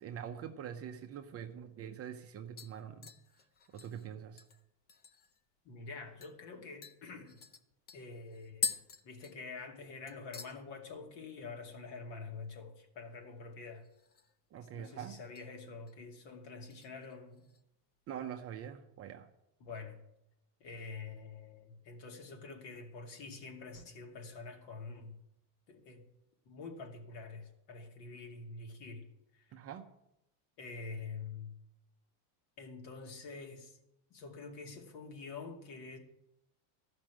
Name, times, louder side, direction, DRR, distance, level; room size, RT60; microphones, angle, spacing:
voice 1, 0.0-3.1 3.7-4.4 14.5-15.2 18.1-19.3 29.5-29.9, right 9 dB, 30° right, 0.7 m, -44 dB
sound 1, 1.5-1.6 2.0-2.3 2.6-5.4 5.7-5.8 6.2-6.4 6.8-9.8 10.1-10.6 10.9-11.3 11.6-11.7 13.8-14.4 14.7-15.5 15.9-16.2 16.7-17.6 18.0-18.1, left 6 dB, 20° left, 0.5 m, -44 dB
voice 2, 5.6-7.4 7.9-8.8 9.0-13.9 14.7-17.4 19.6-20.0 20.6-25.2 25.7-26.0 26.5-29.1 29.3-29.5 30.6-31.5 32.6-33.8 34.1-36.0, left 4 dB, 55° left, 2.4 m, -46 dB
13.5 x 6.1 x 9.0 m
cardioid pair, 155°, 49 cm